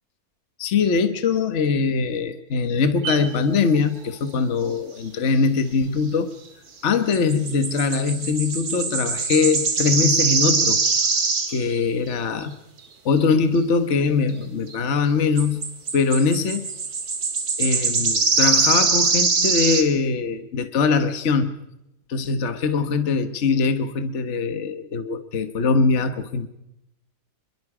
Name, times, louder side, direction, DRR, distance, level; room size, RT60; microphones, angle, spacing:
voice 1, 0.6-6.3 6.8-10.8 11.5-12.5 13.0-15.6 15.9-16.7 17.6-21.5 22.1-26.5, left 5 dB, 50° left, 10 dB, 1.5 m, -22 dB
sound 1, 3.0-3.3 7.1-11.8 12.1-12.2 13.2-13.3 14.7-14.8 15.4-19.8, right 4 dB, 70° right, 2.6 m, -22 dB
26.0 x 22.5 x 4.9 m, 0.87 s
omnidirectional pair, 1.7 m